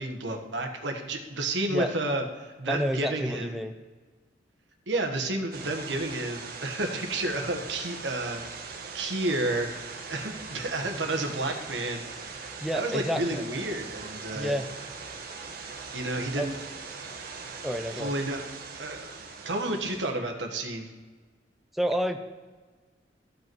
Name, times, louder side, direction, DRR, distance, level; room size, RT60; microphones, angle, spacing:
voice 1, 0.0-3.6 4.9-12.0 12.7-14.6 15.9-16.5 17.9-18.4 18.8-20.9, right 2 dB, 85° right, 4 dB, 1.4 m, -31 dB
voice 2, 2.7-3.7 12.6-13.4 14.3-14.7 16.4-16.6 17.6-18.1 21.7-22.3, equal, ahead, 6 dB, 0.4 m, -29 dB
sound 1, 5.5-20.1, right 4 dB, 55° right, 1.2 m, -41 dB
14.5 x 5.4 x 4.6 m, 1.4 s
head